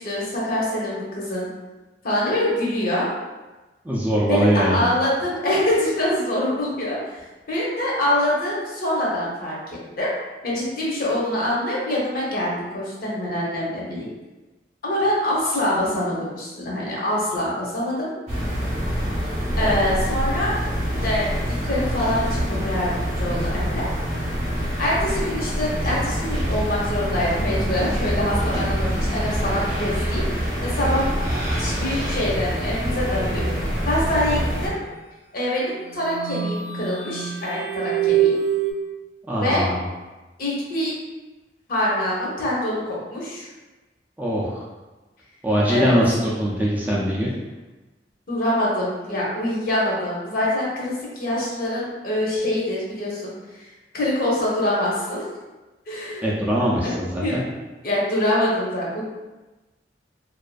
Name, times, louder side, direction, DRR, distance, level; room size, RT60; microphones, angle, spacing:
voice 1, 0.0-1.5 2.0-3.1 4.3-7.2 7.5-10.1 10.4-14.1 14.8-18.1 19.6-20.6 21.0-23.9 24.8-31.1 31.6-34.8 35.3-38.4 39.4-39.7 40.4-40.9 41.7-43.5 45.7-45.9 48.3-53.3 53.9-55.2 55.9-56.2 56.8-56.9 57.2-57.4 57.8-59.0, left 1 dB, 55° left, -5 dB, 0.7 m, -25 dB
voice 2, 3.8-4.8 39.2-39.8 44.2-44.6 45.4-47.3 56.2-57.4, equal, 10° right, -6 dB, 0.3 m, -21 dB
sound 1, 18.3-34.7, equal, 35° right, 0.7 m, -25 dB
sound 2, 35.7-38.7, right 9 dB, 75° right, 0.5 m, -24 dB
2.5 x 2.3 x 2.2 m, 1.1 s
head